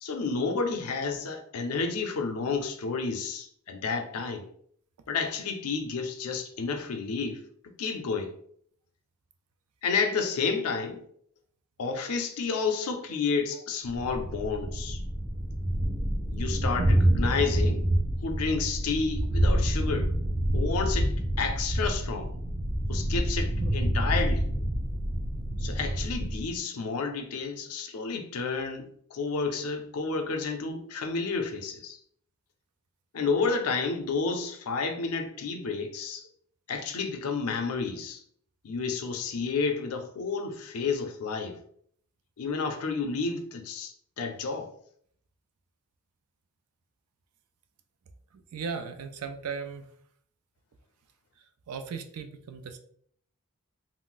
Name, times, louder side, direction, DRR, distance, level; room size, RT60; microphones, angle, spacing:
voice 1, 0.0-4.5 5.1-7.5 7.8-8.3 9.8-11.0 11.8-15.0 16.3-17.9 18.2-20.1 20.5-22.3 22.9-24.5 25.6-32.0 33.1-36.3 36.7-38.2 38.6-41.6 42.4-44.7, left 4 dB, 85° left, 0.5 m, -31 dB
Thunder, 13.9-26.5, right 1 dB, 55° right, 0.7 m, -27 dB
voice 2, 48.3-49.9 51.7-52.8, right 5 dB, 90° right, 0.4 m, -37 dB
2.5 x 2.0 x 3.8 m
head